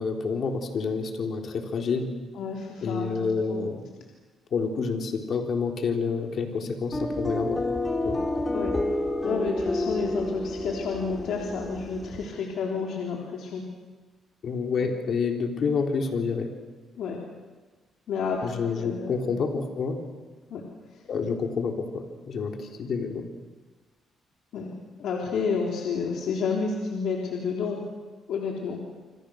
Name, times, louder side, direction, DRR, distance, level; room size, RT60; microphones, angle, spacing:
voice 1, 0.0-2.1 2.8-3.8 4.5-7.6 8.0-8.2 14.4-16.5 18.4-20.0 21.1-23.2, left 5 dB, 60° left, 3 dB, 3.9 m, -28 dB
voice 2, 2.4-3.8 8.5-8.7 9.2-13.7 14.8-14.9 17.0-17.2 18.1-19.3 20.5-20.6 20.9-21.0 24.5-24.7 25.0-27.8 28.3-28.8, left 5 dB, 75° left, -1 dB, 3.6 m, -30 dB
sound 1, 6.9-12.3, left 1 dB, 15° left, 3.7 m, -29 dB
27.5 x 26.5 x 6.6 m, 1.3 s
cardioid pair, 90°, 0 cm